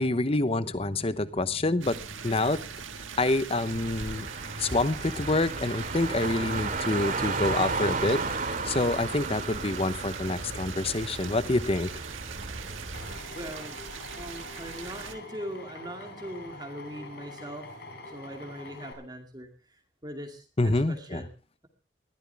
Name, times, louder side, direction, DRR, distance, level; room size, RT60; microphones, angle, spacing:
voice 1, 0.0-2.7 3.2-4.3 4.6-8.2 8.6-11.9 20.6-21.2, left 2 dB, 30° left, 14 dB, 0.9 m, -27 dB
sound 1, 1.8-15.2, right 6 dB, 90° right, 1.7 m, -41 dB
Car, 3.6-13.2, right 3 dB, 45° right, 2.5 m, -34 dB
Drill, 12.9-18.9, left 2 dB, 55° left, 4.7 m, -45 dB
voice 2, 13.3-13.8 14.1-17.7 18.1-21.3, equal, 20° right, 3 dB, 2.4 m, -41 dB
21.0 x 14.5 x 3.4 m, 0.35 s
head